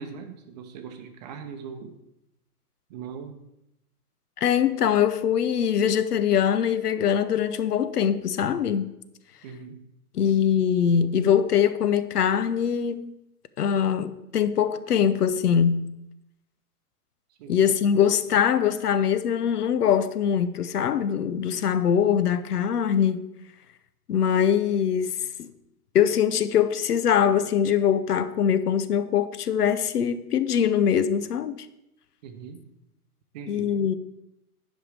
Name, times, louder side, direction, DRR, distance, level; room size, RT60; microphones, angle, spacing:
voice 1, 0.0-2.0 2.9-3.4 9.4-9.8 17.4-17.6 32.2-32.7 33.3-33.7, right 6 dB, 30° right, 0.8 m, -40 dB
voice 2, 4.4-8.9 10.1-13.1 13.6-15.9 17.5-23.3 24.1-25.5 25.9-31.7 33.5-34.0, left 8 dB, 80° left, 0.8 m, -23 dB
10.5 x 5.4 x 4.8 m
hypercardioid pair, 145°, 46 cm